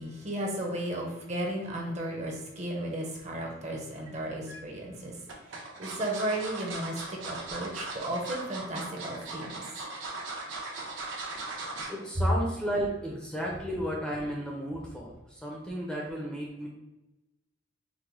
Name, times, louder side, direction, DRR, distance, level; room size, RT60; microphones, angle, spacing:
voice 1, 0.0-9.6, right 1 dB, 35° right, 0 dB, 0.7 m, -35 dB
sound 1, 4.1-4.6 5.3-12.0 12.4-12.6 12.9-13.0, right 3 dB, 75° right, 1.0 m, -38 dB
voice 2, 11.9-16.7, equal, 5° left, -3 dB, 0.5 m, -33 dB
4.8 x 2.1 x 3.8 m, 0.95 s
head